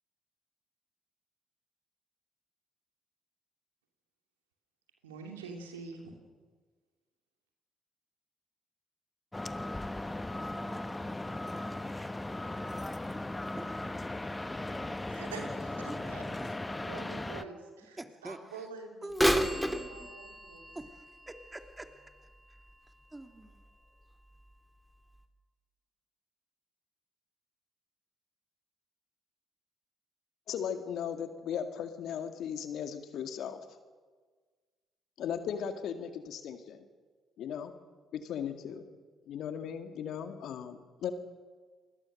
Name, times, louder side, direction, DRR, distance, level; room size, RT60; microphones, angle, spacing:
voice 1, 5.0-6.1 15.1-16.2 16.5-20.6, right 4 dB, 90° right, 3 dB, 2.8 m, -46 dB
sound 1, 9.3-17.4, left 2 dB, 15° left, 1.1 m, -37 dB
voice 2, 10.3-12.5 13.6-13.7 15.0-15.2 15.9-16.6 17.2-17.5 18.0-18.7 19.0-20.1 20.7-21.9 22.5-22.6 23.1-23.6, right 1 dB, 15° right, 6 dB, 2.9 m, -48 dB
Bird vocalization bird call bird song / Telephone, 19.1-22.9 23.5-23.6 24.4-24.5 25.2-25.3, equal, ahead, 2.7 m, -32 dB
voice 3, 30.5-33.6 35.2-36.8 37.4-37.7 38.1-38.9 39.3-41.1, left 8 dB, 65° left, 8 dB, 2.0 m, -37 dB
28.0 x 21.0 x 6.6 m, 1.5 s
hypercardioid pair, 45°, 0 cm